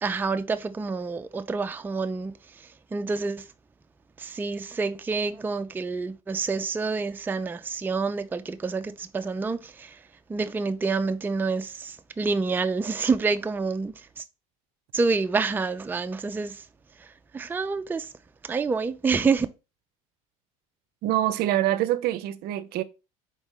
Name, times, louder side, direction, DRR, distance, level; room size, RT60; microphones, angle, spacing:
voice 1, 0.0-2.3 2.9-3.4 4.2-9.9 10.3-14.2 14.9-16.6 17.3-18.1 18.5-19.5, right 4 dB, 10° right, 0.4 m, -27 dB
voice 2, 21.0-22.8, right 13 dB, 60° right, 0.5 m, -25 dB
4.4 x 3.0 x 3.6 m
supercardioid pair, 85°, 18 cm